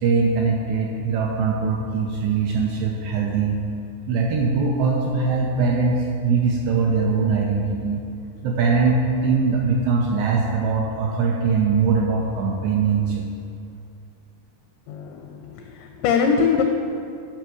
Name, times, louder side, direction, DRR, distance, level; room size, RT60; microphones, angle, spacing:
voice 1, 0.0-3.6 4.1-8.0 8.4-13.3, right 4 dB, 80° right, -1 dB, 2.5 m, -21 dB
voice 2, 14.9-16.6, left 6 dB, 85° left, 4 dB, 2.6 m, -22 dB
11.0 x 5.5 x 6.2 m, 2.5 s
omnidirectional pair, 5.8 m